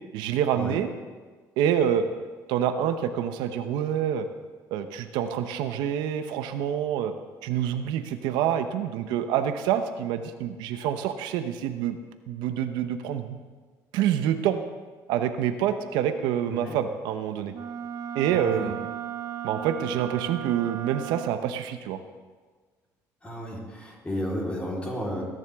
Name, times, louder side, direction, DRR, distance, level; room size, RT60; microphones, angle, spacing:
voice 1, 0.1-0.9 1.6-2.1 2.5-4.3 4.7-7.1 7.4-12.0 12.3-13.4 13.9-14.6 15.1-17.5 18.1-18.9 19.4-22.0, right 9 dB, 85° right, 8 dB, 0.8 m, -27 dB
Wind instrument woodwind instrument, 17.5-21.6, right 10 dB, 55° right, 0.8 m, -36 dB
voice 2, 23.2-25.2, equal, 15° left, -3 dB, 3.8 m, -33 dB
20.0 x 10.5 x 3.6 m, 1.4 s
cardioid pair, 110°, 7 cm